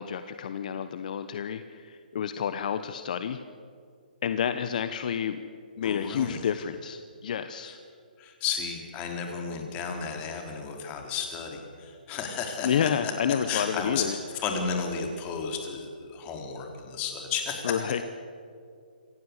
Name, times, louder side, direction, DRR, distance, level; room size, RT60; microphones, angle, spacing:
voice 1, 0.0-3.4 4.2-5.4 5.8-7.7 12.6-14.2 17.6-18.0, left 8 dB, 55° left, 10 dB, 1.1 m, -29 dB
voice 2, 5.8-6.4 7.6-7.8 8.2-13.1 13.5-17.8, left 6 dB, 25° left, 3 dB, 4.1 m, -33 dB
27.0 x 15.5 x 8.3 m, 2.3 s
hypercardioid pair, 140°, 5 cm